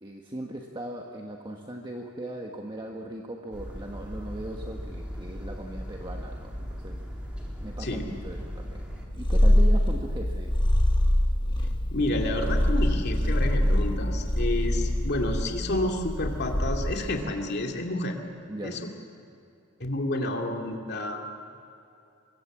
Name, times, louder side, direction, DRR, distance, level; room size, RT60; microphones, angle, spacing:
voice 1, 0.0-7.0 7.6-8.8 9.1-10.5 18.5-18.8, right 1 dB, 25° right, 1 dB, 1.5 m, -38 dB
sound 1, 3.5-9.1, equal, 5° right, 3.6 m, -38 dB
Purr, 9.1-17.2, left 1 dB, 25° left, 1.5 m, -24 dB
voice 2, 11.9-18.2 18.6-18.9 19.8-21.2, left 1 dB, 55° left, 2 dB, 2.6 m, -30 dB
24.0 x 23.0 x 7.4 m, 2.7 s
head